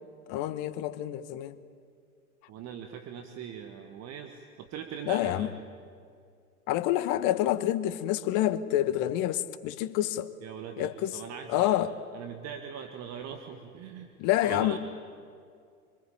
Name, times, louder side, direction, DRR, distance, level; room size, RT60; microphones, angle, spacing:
voice 1, 0.3-1.6 5.1-5.5 6.7-10.3 10.8-11.2 11.5-11.9 14.2-14.8, left 13 dB, 45° left, 1.5 m, -28 dB
voice 2, 2.5-5.5 10.4-11.8 12.1-14.1 14.4-14.8, right 8 dB, 35° right, 1.9 m, -41 dB
26.0 x 25.0 x 9.0 m
figure-of-eight pair, 90°, 43 cm